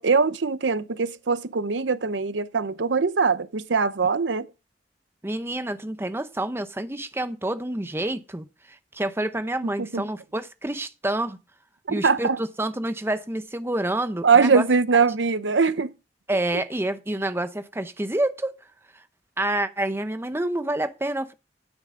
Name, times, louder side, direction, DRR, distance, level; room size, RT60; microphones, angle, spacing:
voice 1, 0.0-4.5 9.8-10.0 11.9-12.4 14.2-15.9, right 5 dB, 90° right, 0.7 m, -22 dB
voice 2, 5.2-11.4 11.9-14.7 16.3-18.5 18.9-19.0 19.4-21.3, right 1 dB, 15° right, 0.8 m, -28 dB
9.7 x 9.1 x 3.7 m
head